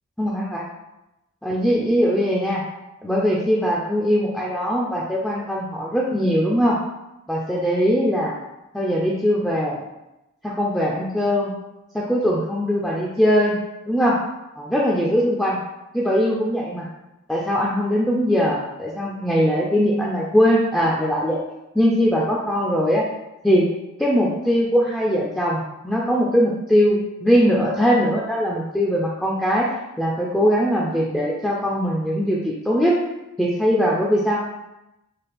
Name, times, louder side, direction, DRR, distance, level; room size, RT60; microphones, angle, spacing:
voice 1, 0.2-0.7 1.4-2.6 3.0-6.8 7.3-8.4 8.7-9.8 10.4-11.5 11.9-13.6 13.9-14.2 14.6-15.6 15.9-16.9 17.3-21.4 21.7-23.0 23.4-23.7 24.0-29.7 30.0-32.9 33.4-34.4, equal, 5° left, -5 dB, 0.3 m, -21 dB
4.0 x 2.4 x 3.4 m, 0.94 s
head